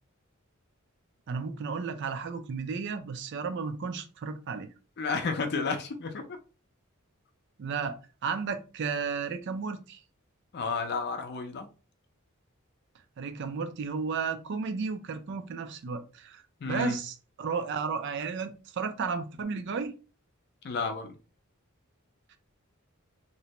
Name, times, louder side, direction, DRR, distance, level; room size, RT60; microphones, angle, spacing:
voice 1, 1.3-4.7 7.6-10.0 13.2-19.9, right 5 dB, 55° right, 0.4 m, -33 dB
voice 2, 5.0-6.3 10.5-11.7 16.6-17.0 20.6-21.1, left 4 dB, 50° left, 0.5 m, -31 dB
2.6 x 2.1 x 2.8 m
head